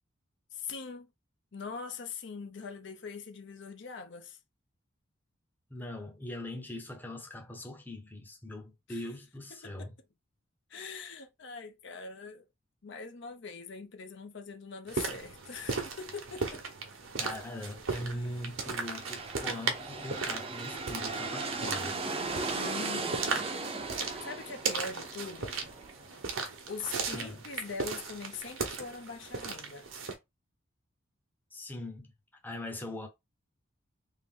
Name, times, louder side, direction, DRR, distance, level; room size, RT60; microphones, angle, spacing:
voice 1, 0.5-1.1 1.5-4.4 8.9-9.0 9.5-9.9 10.7-12.5 12.8-16.6 18.0-18.4 22.5-23.4 23.7-25.6 26.7-29.9, left 5 dB, 55° left, 0.5 m, -42 dB
voice 2, 5.7-10.0 17.2-22.0 27.1-27.4 31.5-32.1 32.4-33.1, left 1 dB, 10° left, 0.7 m, -41 dB
sound 1, 14.9-30.2, right 4 dB, 75° right, 1.0 m, -37 dB
sound 2, 18.7-26.3, right 3 dB, 25° right, 0.6 m, -37 dB
3.5 x 2.5 x 3.6 m
head